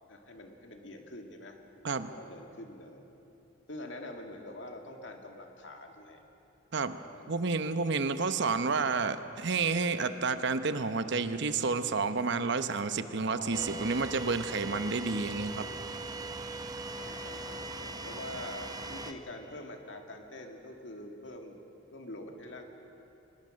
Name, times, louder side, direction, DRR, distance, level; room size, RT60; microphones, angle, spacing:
voice 1, 0.1-1.6 1.9-3.0 3.7-6.2 7.2-7.5 13.3-14.0 16.9-21.6 21.9-22.6, left 1 dB, 65° left, 3 dB, 2.1 m, -45 dB
voice 2, 7.3-15.6, right 4 dB, 60° right, 10 dB, 0.9 m, -30 dB
sound 1, 13.5-19.1, right 2 dB, 20° right, 0.8 m, -40 dB
22.5 x 20.0 x 6.5 m, 3.0 s
head